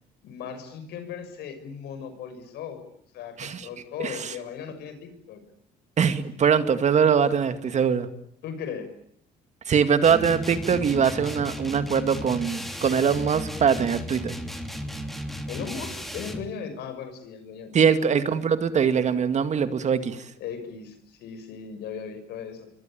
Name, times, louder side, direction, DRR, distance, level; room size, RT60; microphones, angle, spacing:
voice 1, 0.2-2.8 3.1-5.4 8.4-8.9 15.5-17.7 20.4-22.7, left 7 dB, 75° left, 10 dB, 6.2 m, -37 dB
voice 2, 4.0-4.3 6.0-8.1 9.7-14.3 17.7-20.3, right 7 dB, 45° right, 10 dB, 2.2 m, -22 dB
sound 1, 10.0-16.5, equal, ahead, 3.3 m, -35 dB
27.5 x 24.0 x 9.0 m, 0.67 s
cardioid pair, 110°, 17 cm